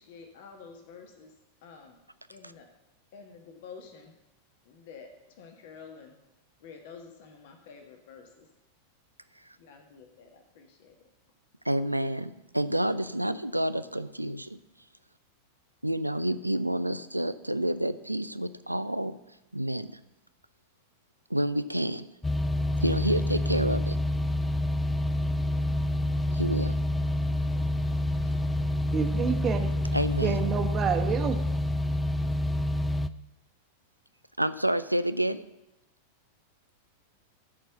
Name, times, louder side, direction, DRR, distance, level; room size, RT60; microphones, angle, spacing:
voice 1, 0.0-2.0 2.3-2.7 3.1-4.1 4.6-6.2 6.6-8.5 9.6-11.0, left 5 dB, 50° left, 5 dB, 1.4 m, -49 dB
voice 2, 11.6-14.6 15.8-19.2 19.5-20.0 21.3-22.1 22.8-24.0 26.3-26.8 29.9-30.4 34.4-35.4, right 1 dB, 85° right, 13 dB, 0.4 m, -29 dB
sound 1, 22.2-33.1, left 1 dB, 10° left, 0.4 m, -28 dB
voice 3, 28.9-29.7 30.2-31.5, right 7 dB, 25° right, 6 dB, 1.1 m, -29 dB
13.5 x 4.6 x 6.8 m, 0.94 s
figure-of-eight pair, 90°, 0 cm